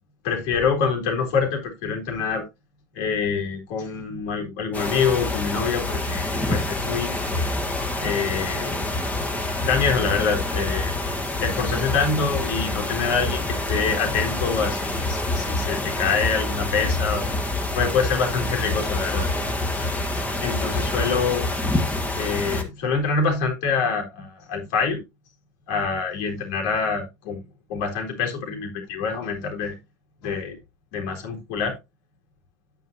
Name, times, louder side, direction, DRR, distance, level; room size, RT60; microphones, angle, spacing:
voice 1, 0.2-2.4 2.9-7.1 8.0-8.8 9.6-10.9 11.4-17.3 17.7-19.3 19.7-19.9 20.4-21.5 22.2-25.0 25.7-27.4 27.7-29.8 30.2-30.6 30.9-31.8, left 5 dB, 65° left, 3.7 m, -25 dB
sound 1, 4.7-22.6, left 2 dB, 15° left, 1.7 m, -26 dB
9.8 x 8.9 x 3.0 m
supercardioid pair, 150°, 10 cm